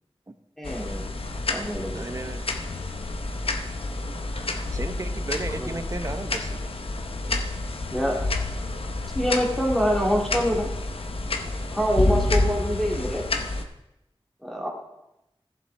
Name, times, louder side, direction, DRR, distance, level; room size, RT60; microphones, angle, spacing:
sound 1, 0.6-13.6, left 2 dB, 70° left, 0.8 m, -29 dB
voice 1, 0.6-1.0 1.5-1.9 5.6-5.7 7.9-8.2 9.1-10.7 11.7-13.2 14.4-14.7, equal, ahead, -1 dB, 2.2 m, -25 dB
voice 2, 1.9-2.5 4.7-6.6, right 2 dB, 35° right, 8 dB, 0.8 m, -34 dB
15.0 x 7.2 x 3.4 m, 0.90 s
wide cardioid pair, 65°, 10 cm